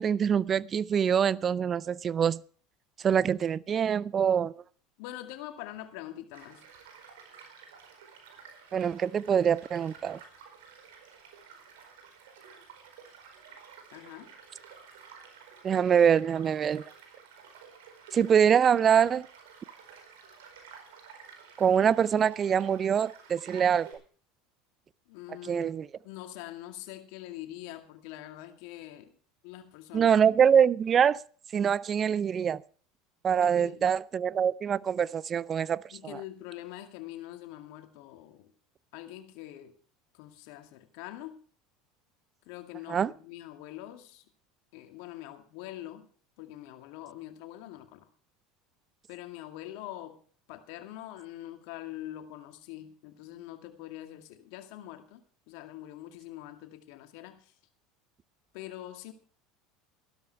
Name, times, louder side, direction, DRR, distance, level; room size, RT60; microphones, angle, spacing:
voice 1, 0.0-2.4 3.0-4.5 8.7-10.2 15.6-16.8 18.1-19.3 21.6-23.9 25.4-25.9 29.9-31.2 31.5-32.6 33.2-35.8 42.9-43.1, right 8 dB, 35° right, 0.5 m, -24 dB
voice 2, 5.0-6.6 13.9-14.4 25.1-29.1 29.4-30.2 33.4-33.9 35.9-38.5 38.9-39.7 40.1-41.4 42.5-44.3 44.7-46.1 46.4-48.1 49.1-50.2 50.5-57.6 58.5-59.1, left 14 dB, 65° left, 2.2 m, -44 dB
Child speech kid speaking / Stream / Car passing by, 6.3-23.9, right 6 dB, 80° right, 4.6 m, -52 dB
14.5 x 12.5 x 4.6 m
hypercardioid pair, 85°, 0 cm